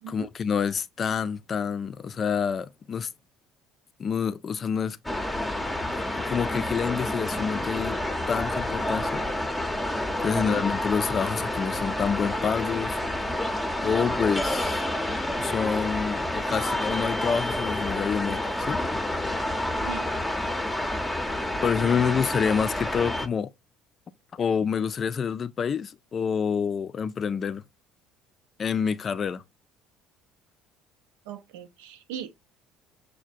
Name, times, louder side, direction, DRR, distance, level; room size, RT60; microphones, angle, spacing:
voice 1, 0.1-3.1 4.0-5.0 6.1-8.0 8.3-9.3 10.2-13.0 13.8-14.9 15.4-18.8 19.4-19.5 21.6-23.5 24.3-27.6 28.6-29.4, left 6 dB, 45° left, 0.4 m, -27 dB
sound 1, 5.0-23.3, left 1 dB, 10° left, 0.7 m, -29 dB
voice 2, 10.3-10.6 19.8-20.1 31.3-32.3, right 8 dB, 85° right, 0.6 m, -38 dB
6.3 x 2.2 x 2.5 m
hypercardioid pair, 70°, 0 cm